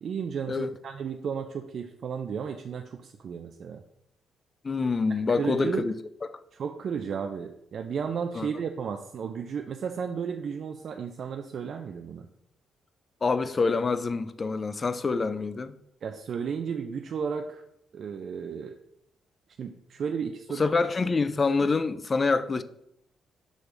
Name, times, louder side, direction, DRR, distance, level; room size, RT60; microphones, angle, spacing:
voice 1, 0.0-3.8 5.2-5.8 6.5-12.3 16.0-17.6 17.9-18.8 19.6-20.6, right 6 dB, 55° right, 0.4 m, -33 dB
voice 2, 4.6-5.9 6.2-6.4 8.3-8.5 13.2-15.8 20.6-22.6, left 4 dB, 30° left, 0.4 m, -26 dB
6.2 x 3.3 x 5.1 m
cardioid pair, 125°, 0 cm